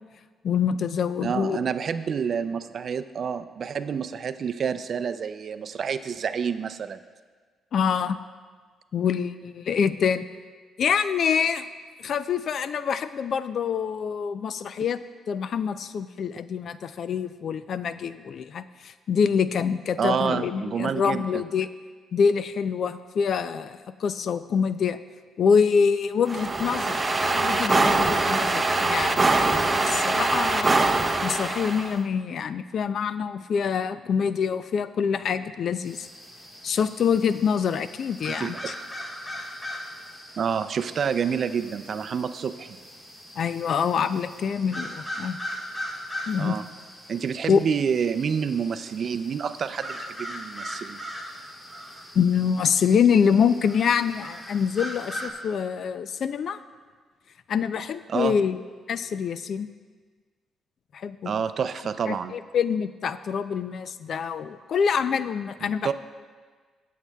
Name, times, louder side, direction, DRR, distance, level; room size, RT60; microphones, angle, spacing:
voice 1, 0.4-1.6 7.7-8.2 8.9-10.2 10.8-11.7 12.0-15.0 15.3-21.7 22.1-25.0 25.4-30.7 31.2-36.1 36.6-38.7 43.4-45.4 46.3-46.6 47.5-47.6 52.1-56.6 57.5-58.6 58.9-59.7 60.9-61.3 62.1-65.9, left 6 dB, 60° left, 13 dB, 0.4 m, -25 dB
voice 2, 1.2-7.0 20.0-21.4 38.4-38.7 40.4-42.7 46.4-46.7 47.1-51.0 58.1-58.4 61.2-62.3 65.6-65.9, right 7 dB, 55° right, 12 dB, 0.4 m, -28 dB
sound 1, 26.3-32.0, right 2 dB, 20° right, 0.7 m, -23 dB
sound 2, 35.8-55.3, equal, 15° left, 1.6 m, -40 dB
21.0 x 7.4 x 2.3 m, 1.5 s
cardioid pair, 90°, 0 cm